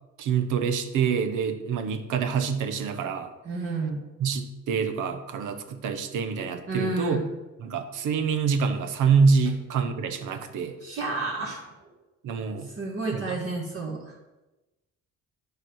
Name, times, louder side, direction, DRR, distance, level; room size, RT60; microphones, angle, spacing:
voice 1, 0.2-3.3 4.2-7.2 7.6-10.8 12.2-12.7 13.1-13.4, right 5 dB, 85° right, 9 dB, 1.0 m, -26 dB
voice 2, 3.5-4.0 6.7-7.2 10.8-11.6 12.7-14.1, right 3 dB, 50° right, -6 dB, 1.9 m, -30 dB
10.5 x 5.0 x 6.3 m, 1.1 s
cardioid pair, 90°, 30 cm